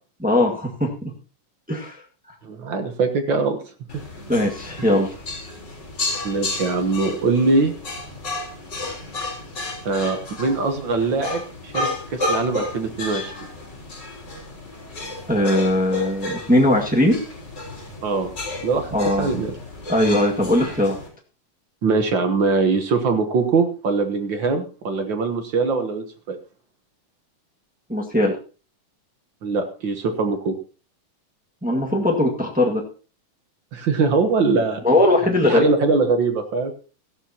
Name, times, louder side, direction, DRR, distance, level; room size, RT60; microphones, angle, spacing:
voice 1, 0.2-1.1 1.7-2.0 4.3-5.1 15.3-17.2 18.9-19.3 19.9-21.0 27.9-28.3 31.6-32.8 34.8-35.6, left 1 dB, 10° right, -1 dB, 0.4 m, -19 dB
voice 2, 2.4-3.6 6.2-7.7 9.8-13.3 18.0-18.3 18.6-19.5 21.8-26.4 29.4-30.6 33.7-34.8 35.5-36.7, right 4 dB, 70° right, 7 dB, 1.1 m, -22 dB
sound 1, 3.9-21.1, left 2 dB, 30° left, 4.4 m, -32 dB
17.0 x 13.0 x 2.9 m, 0.35 s
omnidirectional pair, 3.8 m